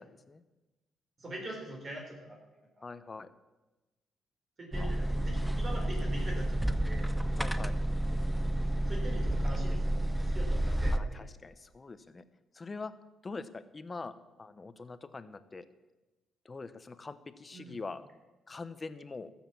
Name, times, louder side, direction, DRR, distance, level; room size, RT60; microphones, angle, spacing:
voice 1, 1.2-2.4 4.6-7.1 8.9-11.0 17.5-17.8, right 1 dB, 40° right, -1 dB, 3.5 m, -43 dB
voice 2, 2.8-3.3 4.8-4.9 7.4-7.7 10.9-12.2 12.5-12.9 13.2-15.7 16.4-18.0 18.5-19.3, left 3 dB, 30° left, 12 dB, 0.9 m, -43 dB
sound 1, 4.7-11.0, right 1 dB, ahead, 0.7 m, -30 dB
13.5 x 7.4 x 7.2 m, 1.1 s
cardioid pair, 90°, 0 cm